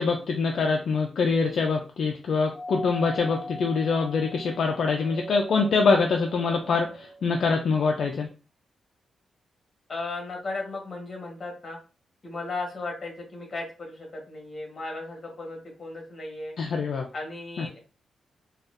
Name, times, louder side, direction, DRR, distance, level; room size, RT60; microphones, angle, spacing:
voice 1, 0.0-8.3 16.6-17.1 17.6-17.7, left 4 dB, 60° left, 2 dB, 0.4 m, -24 dB
Doorbell, 2.5-7.4, left 1 dB, 5° right, 0.6 m, -40 dB
voice 2, 9.9-11.8 12.2-16.5 17.1-17.8, left 3 dB, 35° left, 0 dB, 1.3 m, -36 dB
4.1 x 2.3 x 2.5 m, 0.35 s
wide cardioid pair, 135°, 0 cm